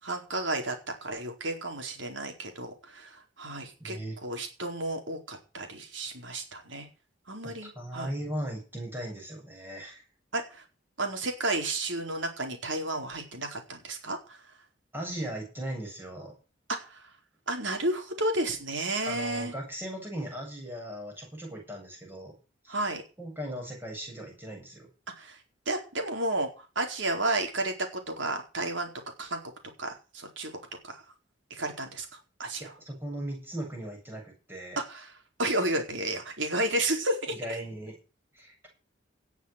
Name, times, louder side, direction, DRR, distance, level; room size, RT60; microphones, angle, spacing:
voice 1, 0.0-0.7 1.0-6.9 7.3-8.1 10.3-10.6 11.0-14.4 16.8-17.1 17.5-19.5 22.7-23.0 25.2-25.4 25.7-28.9 29.2-29.4 29.8-30.5 30.8-31.0 31.5-32.1 32.4-32.7 34.8-35.1 35.4-37.3, right 2 dB, 80° right, 4 dB, 4.4 m, -32 dB
voice 2, 3.8-4.1 7.4-10.0 14.9-16.3 19.0-22.3 22.6-22.8 23.2-24.9 32.6-34.8 37.3-38.0 38.3-38.5, right 1 dB, 10° right, 0 dB, 8.0 m, -38 dB
18.5 x 7.1 x 6.7 m, 0.34 s
head